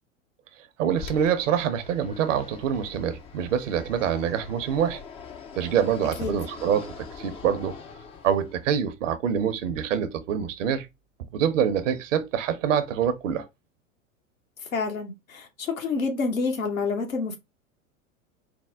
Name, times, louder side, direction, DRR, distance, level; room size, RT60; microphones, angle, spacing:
voice 1, 0.8-5.0 5.6-7.7 8.2-10.9 11.3-13.5, right 8 dB, 70° right, 0.8 m, -25 dB
Fixed-wing aircraft airplane, 1.0-8.8, left 6 dB, 15° left, 0.3 m, -43 dB
voice 2, 14.7-17.4, left 4 dB, 80° left, 1.2 m, -28 dB
4.6 x 2.2 x 3.4 m
hypercardioid pair, 90°, 40 cm